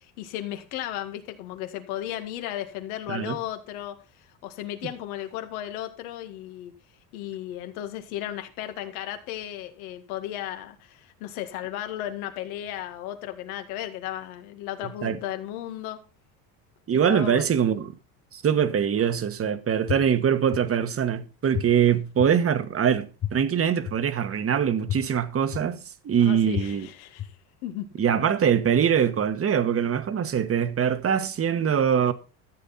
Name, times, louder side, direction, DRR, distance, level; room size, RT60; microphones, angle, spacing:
voice 1, 0.0-4.0 4.4-6.7 7.1-16.0 16.9-17.6 26.2-27.4 27.6-27.9, left 12 dB, 90° left, 2.0 m, -35 dB
voice 2, 16.9-17.9 18.3-26.9 28.0-32.1, right 8 dB, 35° right, 1.3 m, -23 dB
sound 1, 19.9-20.0 20.5-20.6 21.5-21.6 22.2-22.3 23.2-23.3 23.9-24.0 24.9-25.0 25.5-25.6 26.5-26.6 27.2-27.3, left 12 dB, 35° left, 1.2 m, -27 dB
14.0 x 8.1 x 4.2 m
supercardioid pair, 100°, 41 cm